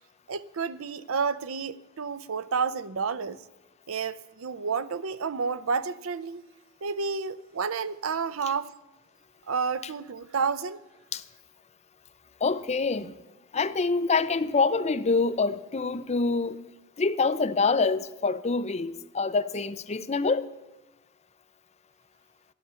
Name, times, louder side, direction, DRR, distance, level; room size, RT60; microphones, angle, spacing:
voice 1, 0.3-3.4 3.9-6.4 6.8-8.7 9.5-10.8, right 5 dB, 90° right, 0.6 m, -30 dB
voice 2, 12.4-13.1 13.5-16.6 17.0-20.5, left 4 dB, 35° left, 0.6 m, -26 dB
15.0 x 11.5 x 6.9 m
head